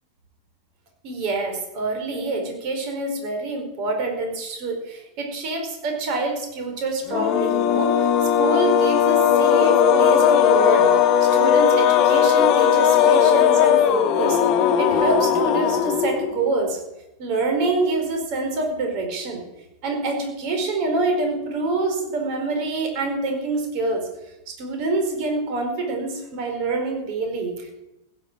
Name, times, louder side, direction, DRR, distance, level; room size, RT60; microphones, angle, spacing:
voice 1, 1.0-7.9 8.3-10.9 11.2-14.4 14.8-16.8 17.2-19.4 19.8-24.1 24.5-27.7, right 3 dB, 45° right, 3 dB, 4.6 m, -26 dB
sound 1, 7.1-16.4, left 8 dB, 35° left, 1.4 m, -18 dB
15.5 x 7.8 x 9.1 m, 0.92 s
figure-of-eight pair, 90°, 0 cm